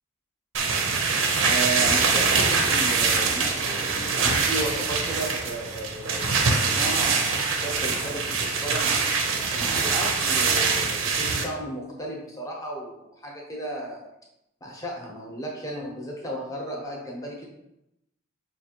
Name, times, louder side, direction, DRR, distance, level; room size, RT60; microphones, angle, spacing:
sound 1, 0.5-11.4, right 4 dB, 70° right, 0.6 m, -24 dB
voice 1, 1.4-9.0 9.5-14.1 14.6-17.5, right 1 dB, 15° left, -2 dB, 0.8 m, -34 dB
5.4 x 2.4 x 2.9 m, 0.86 s
head